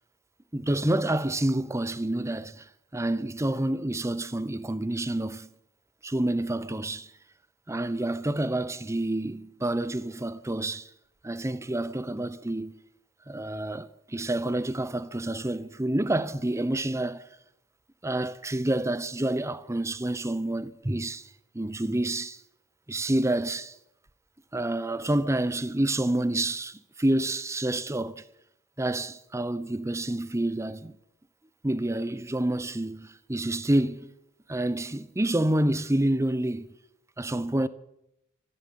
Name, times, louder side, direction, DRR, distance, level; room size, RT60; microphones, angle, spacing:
voice 1, 0.5-2.7 2.9-5.5 6.0-7.1 7.7-10.9 11.2-12.7 13.3-17.2 18.0-21.3 21.5-22.4 22.9-23.7 24.5-28.2 28.8-30.9 31.6-34.1 34.5-36.7 37.2-37.7, right 1 dB, 15° right, 0.7 m, -28 dB
14.0 x 11.0 x 9.5 m
head